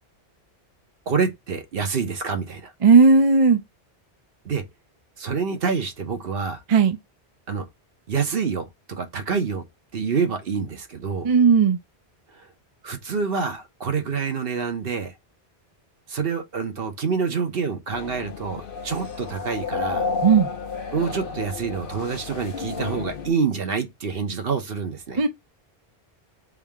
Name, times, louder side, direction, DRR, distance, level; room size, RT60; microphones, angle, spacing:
voice 1, 1.1-2.7 4.4-4.6 5.2-6.6 7.5-7.6 8.1-9.6 9.9-11.3 12.3-12.5 12.8-15.1 16.1-20.1 20.9-25.2, right 5 dB, 60° right, 1.2 m, -27 dB
voice 2, 2.8-3.6 6.7-7.0 11.2-11.8 20.2-20.5 25.2-25.3, right 5 dB, 40° right, 0.6 m, -15 dB
sound 1, 17.9-23.3, left 4 dB, 60° left, 0.9 m, -31 dB
3.7 x 2.8 x 3.5 m
omnidirectional pair, 1.1 m